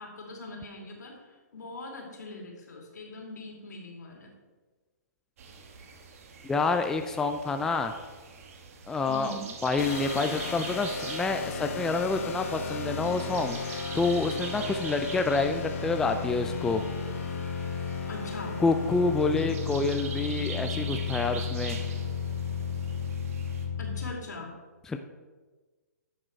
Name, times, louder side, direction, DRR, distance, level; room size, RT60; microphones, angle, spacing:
voice 1, 0.0-4.3 9.1-9.4 18.1-18.6 23.8-24.5, left 2 dB, 80° left, 0 dB, 2.7 m, -41 dB
sound 1, 5.4-23.7, right 5 dB, 55° right, 1.4 m, -44 dB
voice 2, 6.4-7.9 8.9-9.3 9.6-13.6 13.9-16.8 18.6-21.8 24.9-25.0, left 3 dB, 5° left, 6 dB, 0.4 m, -28 dB
sound 2, 9.8-24.1, left 5 dB, 50° left, 1.4 m, -34 dB
10.5 x 6.6 x 4.5 m, 1.3 s
hypercardioid pair, 145°, 9 cm